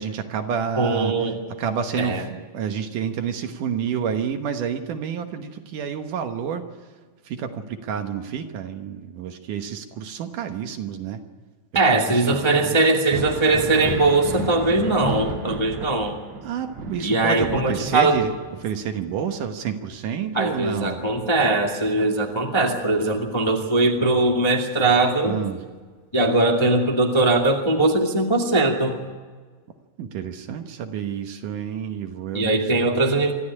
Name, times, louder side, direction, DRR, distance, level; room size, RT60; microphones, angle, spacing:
voice 1, 0.0-1.2 1.6-6.6 7.3-11.2 11.9-12.8 16.4-18.4 18.6-21.0 25.2-25.6 30.0-32.7, right 7 dB, 65° right, 6 dB, 2.5 m, -29 dB
voice 2, 0.8-1.4 2.0-2.2 11.7-16.2 17.0-18.2 20.3-25.3 26.1-29.0 32.3-33.3, right 2 dB, 15° left, 1 dB, 1.1 m, -20 dB
Thunder, 12.9-22.3 22.7-23.9 25.4-25.5 26.3-26.5, right 2 dB, 50° right, 3.3 m, -34 dB
26.0 x 13.5 x 9.8 m, 1.4 s
omnidirectional pair, 4.3 m